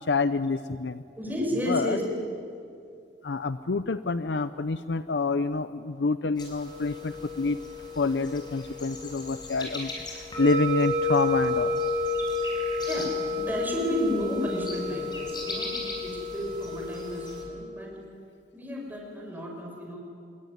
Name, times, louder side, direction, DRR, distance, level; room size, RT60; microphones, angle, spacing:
voice 1, 0.0-1.0 1.7-2.0 3.2-7.6 8.0-9.9 10.4-11.8, left 4 dB, 70° left, 12 dB, 0.6 m, -27 dB
voice 2, 1.2-2.0 12.9-18.0 18.5-20.0, equal, 10° right, -1 dB, 6.3 m, -32 dB
sound 1, 6.4-17.4, left 2 dB, 25° left, 6.5 m, -31 dB
26.5 x 22.5 x 9.8 m, 2.5 s
head